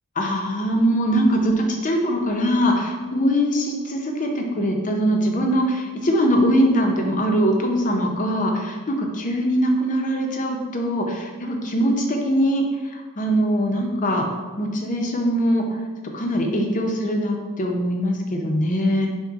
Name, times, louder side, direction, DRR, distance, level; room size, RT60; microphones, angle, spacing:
voice 1, 0.2-14.3 14.6-15.6 16.1-19.1, equal, 35° left, 2 dB, 0.6 m, -22 dB
5.9 x 2.1 x 4.0 m, 1.3 s
head